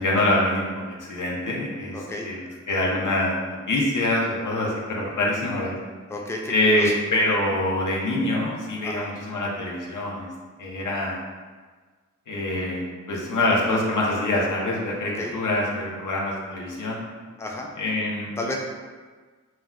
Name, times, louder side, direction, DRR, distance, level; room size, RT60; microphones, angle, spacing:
voice 1, 0.0-5.8 6.5-10.3 10.6-11.2 12.3-17.0 17.8-18.3, left 1 dB, 90° left, -3 dB, 0.6 m, -25 dB
voice 2, 1.9-2.3 6.1-6.9 8.8-9.1 15.2-15.3 17.4-17.7 18.4-18.6, left 2 dB, 10° left, 0 dB, 0.3 m, -32 dB
2.2 x 2.2 x 3.5 m, 1.4 s
wide cardioid pair, 70°, 30 cm